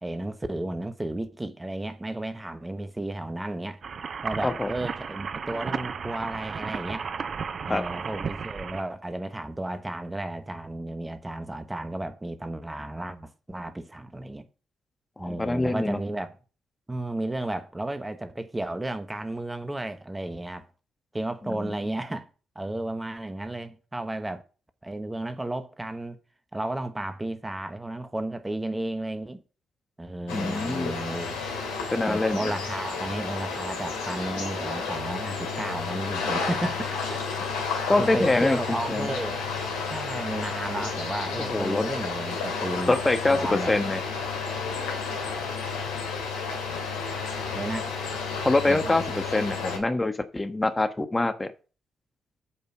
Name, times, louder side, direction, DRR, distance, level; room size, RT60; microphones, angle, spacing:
voice 1, 0.0-3.8 4.2-7.1 7.7-14.5 15.2-16.3 16.9-20.7 21.1-22.3 22.5-24.4 24.8-26.2 26.5-29.4 30.0-31.4 32.1-37.0 37.4-37.5 38.0-39.4 39.9-43.0 43.3-43.7 47.5-47.8 48.7-49.3, right 1 dB, 15° right, 1.3 m, -33 dB
sound 1, 3.8-8.8, right 6 dB, 50° right, 0.6 m, -34 dB
voice 2, 15.2-16.0 21.4-21.7 30.3-30.9 31.9-32.5 37.9-39.1 41.5-41.8 42.9-44.0 48.4-49.0 49.3-51.5, left 2 dB, 20° left, 1.3 m, -25 dB
sound 2, 30.3-49.8, left 5 dB, 85° left, 2.5 m, -31 dB
8.5 x 5.4 x 6.3 m
hypercardioid pair, 45°, 0 cm